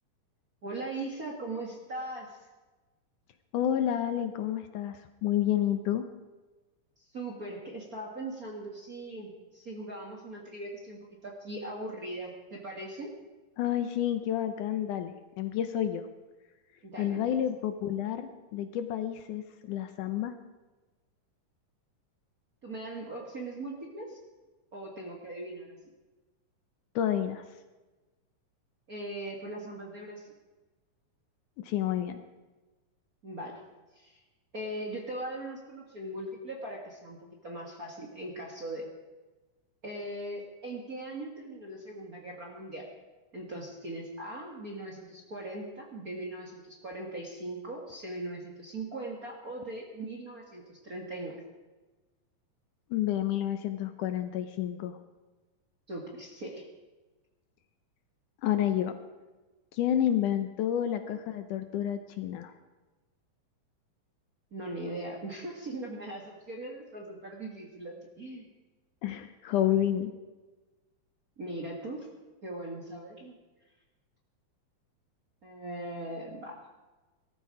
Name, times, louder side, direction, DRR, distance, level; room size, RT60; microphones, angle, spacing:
voice 1, 0.6-2.4 7.0-13.1 16.8-17.4 22.6-24.2 24.7-25.7 28.9-30.3 33.2-33.6 33.9-34.2 34.5-38.9 39.8-42.9 43.3-51.4 55.9-56.7 64.5-68.5 71.4-72.1 72.4-73.3 75.4-76.6, right 1 dB, 35° right, -1 dB, 1.7 m, -40 dB
voice 2, 3.5-6.0 13.6-16.0 17.0-20.3 27.0-27.4 31.6-32.2 52.9-55.0 58.4-59.0 59.7-62.5 69.0-70.1, left 11 dB, 75° left, 8 dB, 2.1 m, -30 dB
18.5 x 13.0 x 4.9 m, 1.2 s
omnidirectional pair, 4.0 m